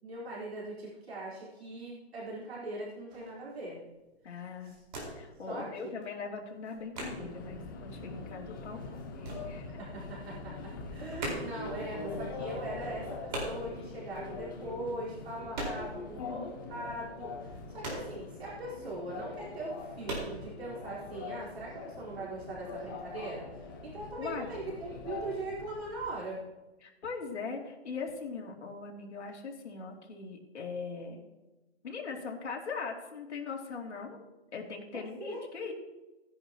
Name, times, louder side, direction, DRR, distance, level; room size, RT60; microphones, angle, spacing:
voice 1, 0.0-3.8 4.3-4.8 5.5-5.7 9.7-26.4 34.9-35.5, right 2 dB, 65° right, -6 dB, 4.4 m, -41 dB
sound 1, 3.1-3.4 3.9-4.1 4.4-5.4 5.6-7.5 7.9-10.1 10.4-16.1 16.4-16.5 16.9-18.8 19.2-19.3 19.7-20.3, right 2 dB, 40° right, 4.6 m, -40 dB
voice 2, 4.2-4.7 5.2-9.8 16.2-16.7 24.2-24.5 26.8-31.2 31.8-34.2 34.5-35.7, left 4 dB, 85° left, -1 dB, 2.9 m, -40 dB
Subway metro underground, 6.9-26.2, left 3 dB, 20° left, 0.8 m, -43 dB
16.5 x 10.5 x 3.0 m, 1.1 s
hypercardioid pair, 180°, 33 cm